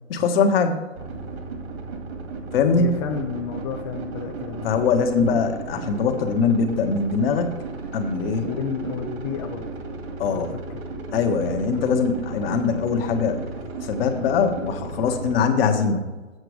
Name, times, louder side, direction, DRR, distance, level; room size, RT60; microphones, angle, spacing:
voice 1, 0.1-0.9 2.5-3.0 4.6-7.6 7.9-8.5 10.2-10.5 11.1-13.4 13.8-16.0, left 5 dB, 50° left, 5 dB, 1.3 m, -22 dB
sound 1, 1.0-15.4, right 4 dB, 60° right, 2.1 m, -35 dB
voice 2, 2.7-5.0 8.4-9.7 10.3-10.8, left 6 dB, 25° left, 2 dB, 0.5 m, -31 dB
7.9 x 6.7 x 4.9 m, 1.2 s
hypercardioid pair, 135°, 37 cm